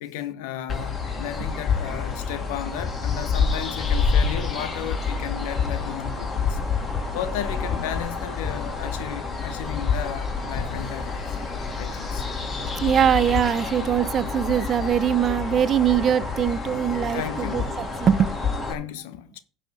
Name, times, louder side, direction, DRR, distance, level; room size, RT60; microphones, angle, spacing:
voice 1, 0.0-6.6 7.1-11.2 11.8-12.3 17.1-17.7 18.7-19.4, left 10 dB, 70° left, 0.8 m, -34 dB
sound 1, 0.7-18.7, left 5 dB, 30° left, 2.8 m, -28 dB
sound 2, 10.2-13.8, left 5 dB, 55° left, 1.4 m, -46 dB
voice 2, 12.8-18.7, right 9 dB, 40° right, 0.6 m, -22 dB
10.5 x 4.2 x 6.4 m
hypercardioid pair, 75°, 0 cm